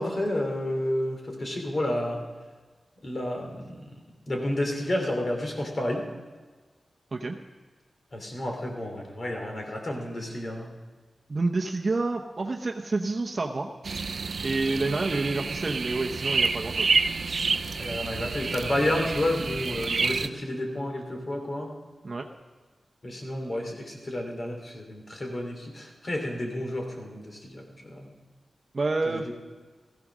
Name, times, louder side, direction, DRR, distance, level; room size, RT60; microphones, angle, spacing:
voice 1, 0.0-2.2 3.0-3.8 4.3-6.0 8.1-10.7 17.7-21.7 23.0-28.1 29.0-29.2, left 1 dB, 40° left, 2 dB, 3.1 m, -30 dB
voice 2, 11.3-13.7 14.4-16.9 22.0-22.3 28.7-29.3, right 3 dB, 40° right, 2 dB, 0.9 m, -28 dB
sound 1, 13.8-20.3, right 4 dB, 60° right, 0.4 m, -28 dB
16.0 x 14.5 x 6.2 m, 1.4 s
wide cardioid pair, 130°, 0 cm